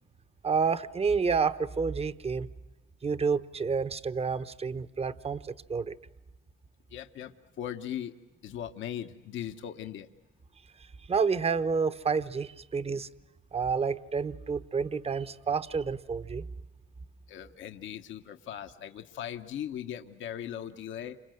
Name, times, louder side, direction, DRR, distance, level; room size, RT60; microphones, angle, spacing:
voice 1, 0.4-2.5 3.0-5.9 11.1-13.1 13.5-16.5, right 5 dB, 30° right, 14 dB, 0.9 m, -29 dB
voice 2, 6.9-7.3 7.6-8.1 8.4-10.1 17.3-21.2, left 10 dB, 75° left, 6 dB, 1.0 m, -39 dB
29.0 x 26.0 x 7.7 m, 1.0 s
cardioid pair, 90°, 20 cm